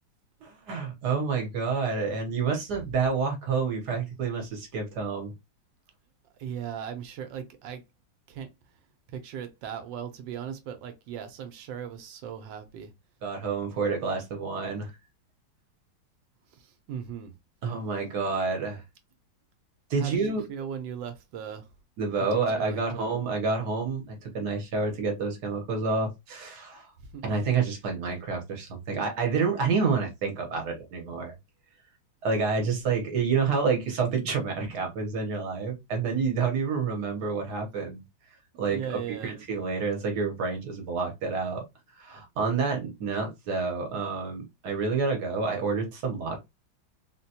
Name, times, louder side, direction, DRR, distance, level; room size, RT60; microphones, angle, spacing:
voice 1, 0.4-5.3 13.2-14.9 17.6-18.8 19.9-20.4 22.0-26.9 27.2-31.3 32.2-38.0 38.6-41.6 41.9-46.4, right 4 dB, 65° right, 1.3 m, -28 dB
voice 2, 6.4-7.8 8.3-8.5 9.1-12.9 16.9-17.3 20.0-21.6 22.3-23.1 27.1-27.2 38.7-39.4, right 8 dB, 80° right, 1.3 m, -38 dB
3.8 x 2.2 x 2.7 m
omnidirectional pair, 2.1 m